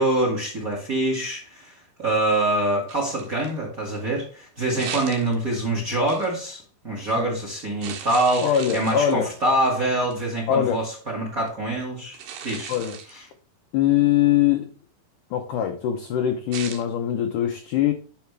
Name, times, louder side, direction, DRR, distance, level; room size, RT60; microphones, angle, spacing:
voice 1, 0.0-12.2 12.4-12.7 13.1-13.2, right 1 dB, 30° right, 1.7 m, -25 dB
sound 1, 2.9-3.6 4.7-5.7 6.1-6.4 7.8-9.3 10.1-10.3 12.1-13.2 16.5-16.8, right 7 dB, 80° right, 3.5 m, -37 dB
voice 2, 4.8-5.2 7.0-7.3 8.4-9.3 10.5-10.9 12.7-13.0 13.7-14.7 15.3-17.9, left 10 dB, 85° left, 1.8 m, -22 dB
10.5 x 5.7 x 3.4 m
omnidirectional pair, 4.7 m